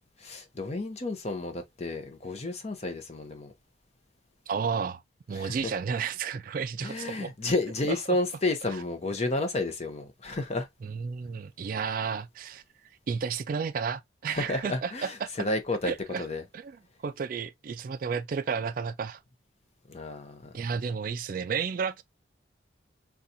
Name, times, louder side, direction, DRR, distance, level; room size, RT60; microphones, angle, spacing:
voice 1, 0.2-3.5 5.3-5.7 6.8-10.7 14.3-15.9 16.2-16.4 19.9-20.5, left 2 dB, 35° left, 0.7 m, -31 dB
voice 2, 4.5-5.0 5.3-7.3 7.9-8.2 10.8-12.6 13.1-15.3 15.9-16.2 16.5-16.7 17.0-19.2 20.5-22.0, right 6 dB, 45° right, 0.3 m, -32 dB
4.0 x 2.3 x 2.6 m
head